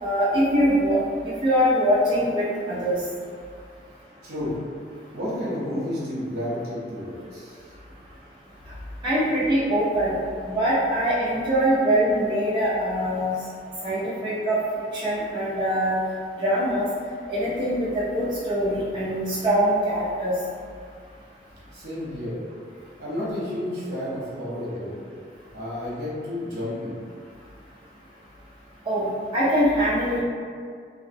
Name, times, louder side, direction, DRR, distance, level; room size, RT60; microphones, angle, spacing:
voice 1, 0.0-1.0 1.4-3.0 9.0-10.1 10.5-13.3 13.8-14.6 14.9-16.0 16.4-16.9 17.3-20.3 28.9-30.2, equal, 25° right, -10 dB, 0.4 m, -23 dB
voice 2, 4.2-4.5 5.1-7.7 21.7-22.4 23.0-24.9 25.5-26.9, left 1 dB, 65° right, -8 dB, 0.8 m, -31 dB
2.5 x 2.0 x 2.6 m, 2.2 s
head